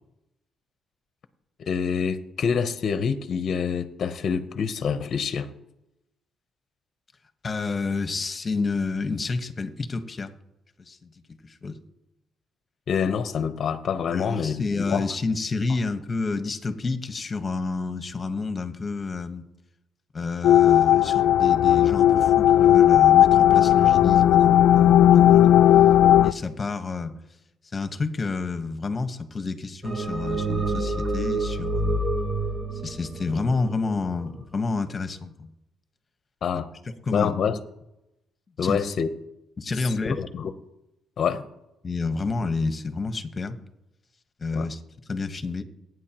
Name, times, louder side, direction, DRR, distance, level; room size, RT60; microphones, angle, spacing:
voice 1, 1.6-5.5 12.9-15.0 36.4-36.7 37.1-37.6 38.6-39.1 39.8-40.5 41.2-41.4 44.5-44.7, left 6 dB, 60° left, 10 dB, 0.8 m, -26 dB
voice 2, 7.4-10.3 10.8-11.1 11.4-11.8 14.1-19.4 20.1-25.5 26.2-27.2 27.7-32.0 32.8-35.5 36.5-36.6 37.0-37.3 38.6-38.8 39.6-40.3 41.8-43.6 44.4-44.8 45.1-45.6, left 3 dB, 35° left, 9 dB, 1.2 m, -29 dB
sound 1, 20.4-26.3, left 11 dB, 80° left, 0.3 m, -16 dB
sound 2, 29.8-34.2, right 2 dB, 45° right, 3.3 m, -27 dB
22.5 x 9.3 x 3.0 m, 0.89 s
cardioid pair, 90°, 0 cm